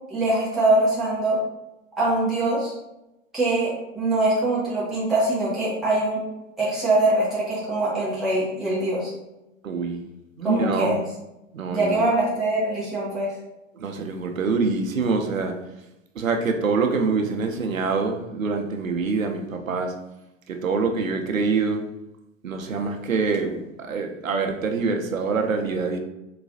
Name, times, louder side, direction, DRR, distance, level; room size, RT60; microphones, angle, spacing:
voice 1, 0.1-1.4 2.0-2.7 3.3-6.2 6.6-9.1 10.4-11.0 11.7-13.3, right 2 dB, ahead, -8 dB, 0.3 m, -23 dB
voice 2, 9.6-10.1 10.4-11.0 11.5-12.0 13.7-15.6 16.1-19.9 20.5-21.8 22.4-26.0, right 4 dB, 80° right, 4 dB, 0.6 m, -25 dB
3.9 x 2.2 x 2.6 m, 0.92 s
figure-of-eight pair, 95°, 39 cm